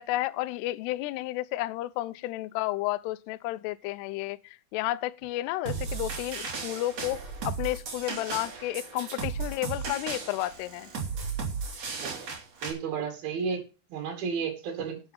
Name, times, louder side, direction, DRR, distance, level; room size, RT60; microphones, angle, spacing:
voice 1, 0.0-10.9, left 17 dB, 80° left, 2.5 m, -32 dB
sound 1, 5.7-12.7, right 5 dB, 40° right, 3.8 m, -35 dB
voice 2, 12.6-13.6 13.9-15.0, right 6 dB, 60° right, 4.0 m, -32 dB
12.0 x 7.9 x 5.6 m
omnidirectional pair, 5.3 m